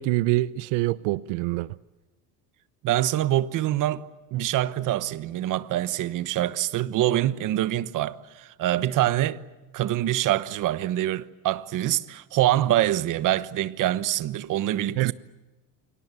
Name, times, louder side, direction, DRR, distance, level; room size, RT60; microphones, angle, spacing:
voice 1, 0.0-1.7 15.0-15.1, right 18 dB, 80° right, 0.8 m, -25 dB
voice 2, 2.8-4.0 4.3-9.4 9.7-15.1, right 13 dB, 45° right, 1.2 m, -25 dB
29.0 x 24.0 x 8.3 m
cardioid pair, 145°, 42 cm